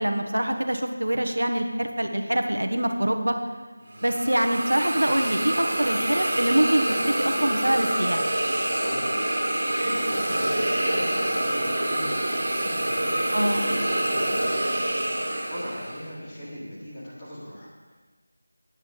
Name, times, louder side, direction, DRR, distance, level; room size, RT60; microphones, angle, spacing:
voice 1, 0.0-3.4 4.0-8.2 13.3-13.6, right 1 dB, 85° right, 5 dB, 1.3 m, -24 dB
Hiss, 3.9-16.1, right 1 dB, 50° right, 2.6 m, -26 dB
voice 2, 8.7-12.3 12.6-14.7 15.0-17.9, equal, 20° left, -10 dB, 3.8 m, -39 dB
14.5 x 10.0 x 3.9 m, 1.3 s
figure-of-eight pair, 170°, 0 cm